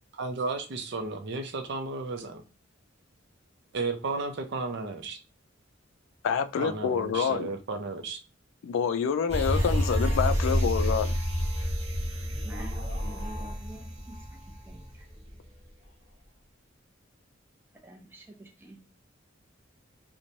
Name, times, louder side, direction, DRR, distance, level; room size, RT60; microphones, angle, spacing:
voice 1, 0.2-2.4 3.7-5.2 6.6-8.2, right 3 dB, 60° right, 0.5 m, -33 dB
voice 2, 6.2-7.5 8.6-11.1, left 7 dB, 75° left, 0.3 m, -27 dB
sound 1, 9.3-14.9 15.3-15.4, equal, 35° right, 0.8 m, -28 dB
voice 3, 12.4-14.4 14.7-15.1 17.8-18.8, right 1 dB, 10° right, 0.5 m, -47 dB
3.0 x 2.1 x 2.6 m
head